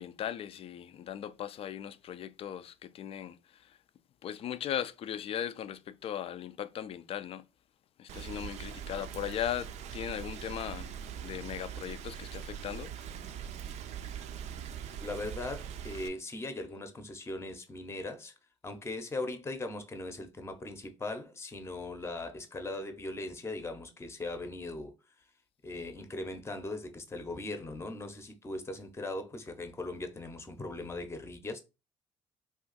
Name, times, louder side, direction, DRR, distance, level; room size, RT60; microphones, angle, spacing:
voice 1, 0.0-3.8 4.2-7.5 8.0-10.9 11.2-12.9, left 10 dB, 50° left, 0.3 m, -38 dB
Rain, 8.1-16.1, right 8 dB, 60° right, 0.4 m, -42 dB
voice 2, 15.0-18.3 18.6-24.9 25.6-31.6, left 2 dB, 20° left, 0.7 m, -39 dB
2.4 x 2.4 x 3.9 m
supercardioid pair, 65°, 13 cm